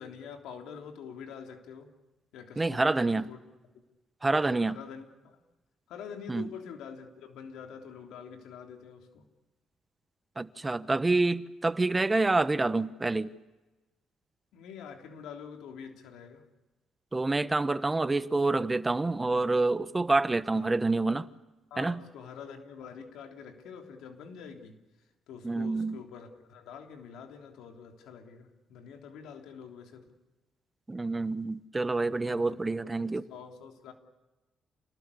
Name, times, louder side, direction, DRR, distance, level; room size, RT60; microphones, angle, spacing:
voice 1, 0.0-1.9 2.3-3.4 4.5-5.4 5.9-9.2 14.5-16.4 20.5-20.9 21.7-24.8 25.3-30.1 32.3-33.9, left 7 dB, 85° left, 3.3 m, -46 dB
voice 2, 2.6-3.2 4.2-4.8 6.3-6.5 10.4-13.3 17.1-21.3 21.8-22.0 25.4-26.0 30.9-33.2, right 3 dB, 20° right, 1.1 m, -27 dB
29.0 x 19.5 x 8.5 m
cardioid pair, 90°, 0 cm